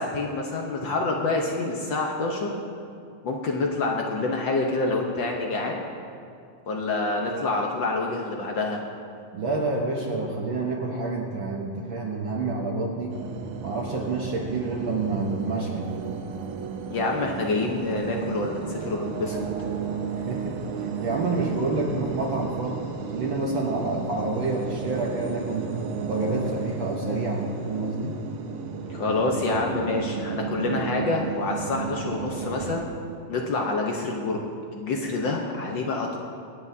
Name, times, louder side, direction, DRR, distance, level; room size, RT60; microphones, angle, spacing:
voice 1, 0.0-2.5 3.2-5.8 6.7-8.8 16.9-19.4 28.9-32.9 33.3-34.4 34.7-36.2, left 3 dB, 75° left, 0 dB, 1.0 m, -27 dB
voice 2, 9.3-13.2 13.6-16.0 20.1-25.7 26.1-28.2, right 3 dB, 60° right, -1 dB, 1.3 m, -28 dB
sound 1, 13.1-32.8, right 6 dB, 80° right, 1.2 m, -33 dB
25.5 x 9.5 x 2.7 m, 2.4 s
omnidirectional pair, 3.3 m